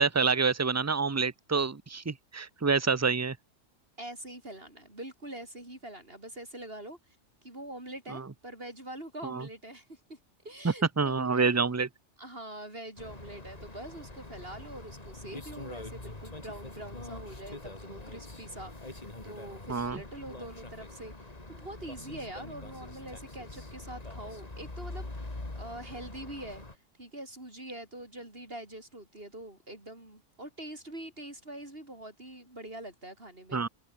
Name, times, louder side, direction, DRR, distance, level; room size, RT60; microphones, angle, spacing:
voice 1, 0.0-3.4 8.1-8.2 9.2-9.5 10.6-11.9 19.7-20.0 33.5-33.7, right 4 dB, 20° right, 0.5 m, -27 dB
voice 2, 4.0-7.0 7.4-10.2 10.4-11.7 12.2-26.6 27.0-33.6, right 1 dB, 55° right, 6.4 m, -44 dB
sound 1, 13.0-26.7, left 2 dB, 35° left, 2.9 m, -44 dB
omnidirectional pair, 1.2 m